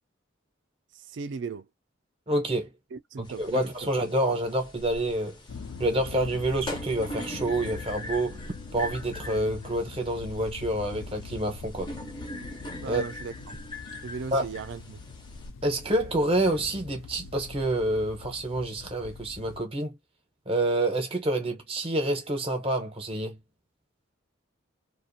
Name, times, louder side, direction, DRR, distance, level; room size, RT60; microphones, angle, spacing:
voice 1, 1.1-1.7 2.9-3.9 12.8-13.3 14.0-15.0, right 5 dB, 65° right, 0.4 m, -37 dB
voice 2, 2.3-2.7 3.2-5.4 5.8-8.4 8.7-11.9 12.9-13.0 14.3-14.5 15.6-20.0 20.5-23.4, right 1 dB, 30° right, 0.7 m, -28 dB
sound 1, 3.2-15.5, left 1 dB, 25° left, 0.5 m, -42 dB
sound 2, 5.5-19.6, left 5 dB, 80° left, 0.4 m, -43 dB
2.5 x 2.2 x 2.5 m
head